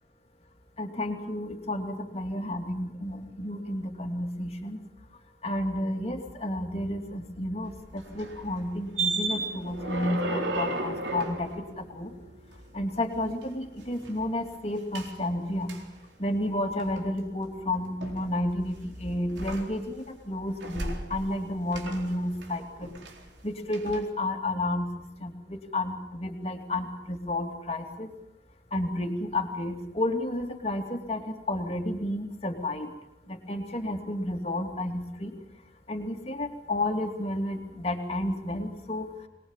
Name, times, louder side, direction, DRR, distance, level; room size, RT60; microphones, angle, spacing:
voice 1, 0.8-4.8 5.4-12.1 12.7-15.7 16.2-22.9 23.4-24.9 25.2-28.1 28.7-32.9 33.3-35.3 35.9-39.1, left 1 dB, 35° left, 3 dB, 2.8 m, -31 dB
sound 1, 7.7-12.7 13.1-14.2 14.9-15.1 15.7-15.8 16.5-17.0 18.0-18.8 19.3-20.1 20.4-21.4 21.7-23.4 23.7-24.0, right 2 dB, 80° right, 4.0 m, -35 dB
23.5 x 21.0 x 7.3 m, 0.93 s
head